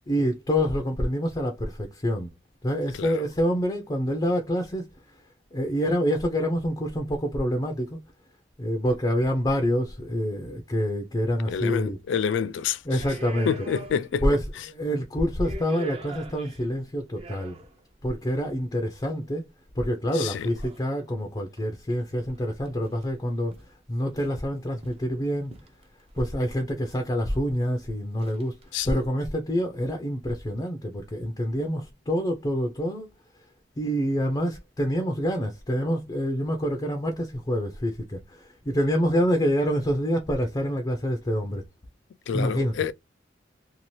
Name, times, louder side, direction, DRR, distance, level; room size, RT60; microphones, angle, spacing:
voice 1, 0.1-2.3 2.6-4.9 5.5-8.0 8.6-12.0 12.4-12.5 12.8-13.7 14.2-17.5 18.0-19.5 19.8-23.5 23.9-25.5 26.2-28.6 28.8-33.1 33.8-41.6 42.3-42.8, equal, 25° left, 0.5 m, -27 dB
voice 2, 11.5-12.8 13.5-14.2 20.2-20.5 28.7-28.9 42.3-42.9, left 7 dB, 80° left, 0.3 m, -27 dB
sound 1, 12.1-12.3 12.9-14.3 14.5-14.6 15.2-17.9 18.8-18.9 20.6-21.1 21.6-21.7 21.9-22.4 22.6-23.1 23.5-23.7 24.2-25.1 25.5-26.4 26.8-27.0 27.3-27.7 28.2-28.6, right 2 dB, 35° right, 0.6 m, -44 dB
2.7 x 2.4 x 3.0 m
head